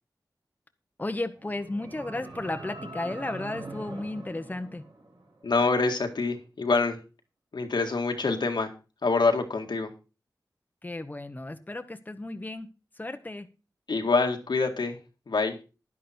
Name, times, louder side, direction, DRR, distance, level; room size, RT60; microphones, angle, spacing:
voice 1, 1.0-4.8 10.8-12.7 13.0-13.5, left 2 dB, 25° left, 8 dB, 1.0 m, -34 dB
sound 1, 1.3-5.5, right 2 dB, 75° right, 5.1 m, -43 dB
voice 2, 5.4-7.0 7.5-8.7 9.0-9.9 13.9-15.0 15.3-15.6, left 3 dB, 80° left, 4 dB, 1.9 m, -25 dB
11.0 x 10.5 x 4.4 m, 0.32 s
wide cardioid pair, 85°, 8 cm